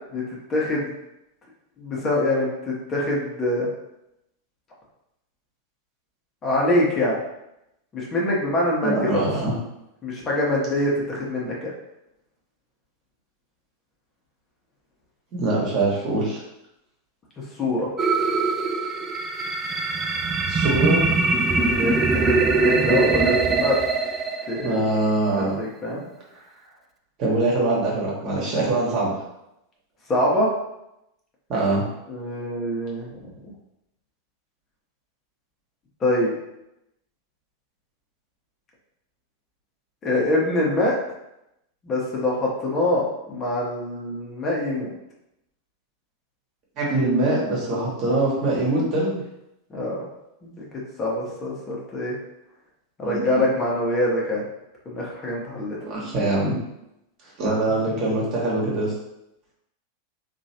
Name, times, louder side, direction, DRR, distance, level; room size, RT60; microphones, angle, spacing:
voice 1, 0.5-0.9 1.8-3.7 6.4-7.2 7.9-9.2 10.0-11.7 17.4-17.9 21.5-23.8 24.5-24.8 25.4-26.1 30.1-30.5 32.1-33.2 36.0-36.3 40.0-40.9 41.8-44.9 49.7-50.0 50.4-50.7 51.0-52.1 53.0-54.4 54.9-55.8 58.0-58.1, left 1 dB, 30° left, -4 dB, 1.0 m, -24 dB
voice 2, 8.8-9.5 15.3-16.4 20.5-21.0 24.6-25.6 27.2-29.1 31.5-31.8 46.8-49.2 53.0-53.5 55.8-56.6 57.4-58.9, right 2 dB, 45° right, -4 dB, 1.2 m, -23 dB
sound 1, 18.0-25.0, right 3 dB, 25° right, 0.3 m, -22 dB
3.0 x 2.5 x 2.8 m, 0.85 s
hypercardioid pair, 95°, 0 cm